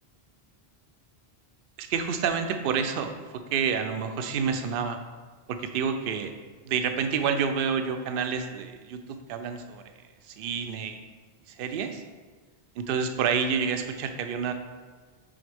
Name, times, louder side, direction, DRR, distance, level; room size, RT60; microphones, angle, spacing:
voice 1, 1.8-3.1 3.5-5.0 5.5-6.3 6.6-9.8 10.3-11.0 11.5-12.0 12.8-14.5, right 6 dB, 65° right, 7 dB, 0.7 m, -28 dB
8.5 x 3.5 x 3.4 m, 1.4 s
omnidirectional pair, 1.1 m